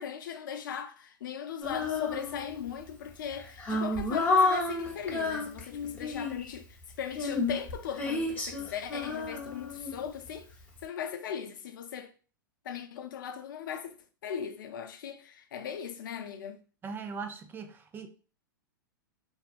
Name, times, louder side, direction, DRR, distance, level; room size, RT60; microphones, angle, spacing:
voice 1, 0.0-10.5 10.8-12.1 12.6-14.0 14.2-16.6, left 8 dB, 70° left, 0.5 m, -39 dB
Female singing, 1.6-2.7 3.3-6.5 7.1-10.3, left 3 dB, 15° left, 1.0 m, -30 dB
voice 2, 16.8-18.1, right 5 dB, 20° right, 0.4 m, -39 dB
2.6 x 2.2 x 2.4 m
hypercardioid pair, 105°, 11 cm